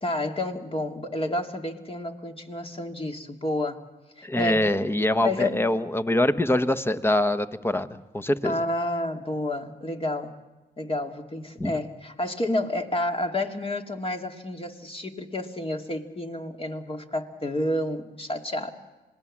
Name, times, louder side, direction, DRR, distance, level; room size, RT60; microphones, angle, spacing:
voice 1, 0.0-3.8 4.2-4.7 5.2-5.7 8.4-10.4 10.8-18.7, left 1 dB, 30° left, 4 dB, 2.3 m, -30 dB
voice 2, 4.2-8.5 11.6-11.7, left 1 dB, 10° left, 12 dB, 1.2 m, -24 dB
26.5 x 19.5 x 7.4 m, 1.2 s
cardioid pair, 65°, 19 cm